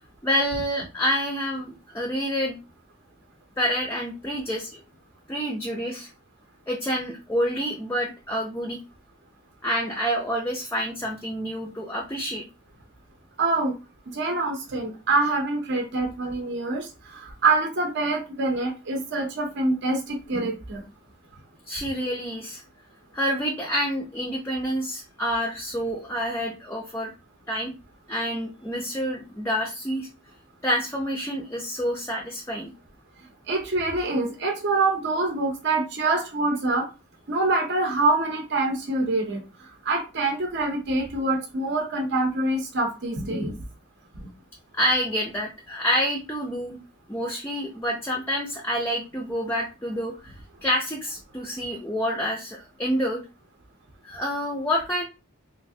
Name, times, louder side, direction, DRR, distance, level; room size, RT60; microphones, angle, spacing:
voice 1, 0.2-2.6 3.6-4.8 5.3-6.1 6.7-8.8 9.6-12.4 21.7-22.6 23.1-27.1 27.5-27.7 28.1-30.1 30.6-32.7 44.7-46.8 47.1-50.3 50.6-53.2 54.0-55.0, equal, 10° left, -1 dB, 0.4 m, -28 dB
voice 2, 13.4-13.7 14.1-20.8 33.5-36.9 37.3-39.4 39.8-43.5 44.1-44.3, right 2 dB, 55° right, 1 dB, 0.6 m, -25 dB
3.1 x 2.4 x 2.6 m, 0.29 s
head